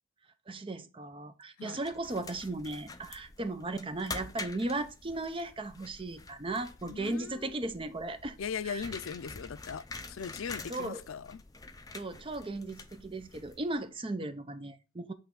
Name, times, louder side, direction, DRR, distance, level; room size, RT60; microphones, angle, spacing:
voice 1, 0.5-8.4 8.6-8.8 10.7-11.0 11.9-15.1, right 2 dB, 25° right, 0.6 m, -36 dB
sound 1, 1.8-13.8, left 3 dB, 20° left, 0.5 m, -47 dB
voice 2, 6.9-7.6 8.4-11.4, left 6 dB, 85° left, 0.4 m, -39 dB
8.3 x 3.3 x 3.7 m
head